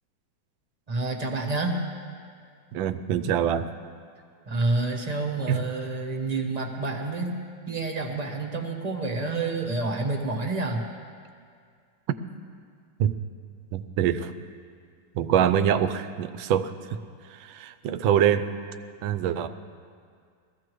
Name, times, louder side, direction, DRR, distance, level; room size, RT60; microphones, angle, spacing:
voice 1, 0.9-1.8 4.5-7.4 7.7-10.8, right 3 dB, 25° right, 3 dB, 1.0 m, -28 dB
voice 2, 2.7-3.7 5.5-5.6 13.0-13.1 13.7-14.3 15.1-17.0 17.3-18.5 19.0-19.5, right 9 dB, 85° right, 11 dB, 1.4 m, -24 dB
21.0 x 15.0 x 3.1 m, 2.1 s
omnidirectional pair, 2.1 m